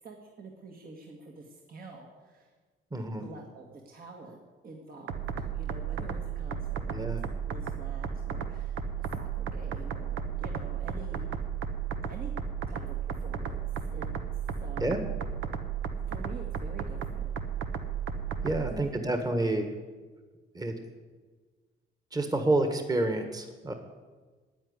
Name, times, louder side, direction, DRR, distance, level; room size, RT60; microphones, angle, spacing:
voice 1, 0.0-2.5 3.2-5.3 5.5-11.4 12.1-12.3 12.7-14.1 14.4-15.0 16.1-17.3 18.7-19.5, right 3 dB, 45° right, 0 dB, 1.7 m, -47 dB
voice 2, 2.9-3.3 6.9-7.2 14.8-15.1 18.4-19.7 20.5-20.7 22.1-23.7, right 2 dB, 20° right, 6 dB, 1.5 m, -29 dB
sound 1, 5.1-18.7, right 7 dB, 90° right, 1.0 m, -34 dB
9.4 x 9.0 x 9.6 m, 1.4 s
cardioid pair, 90°, 20 cm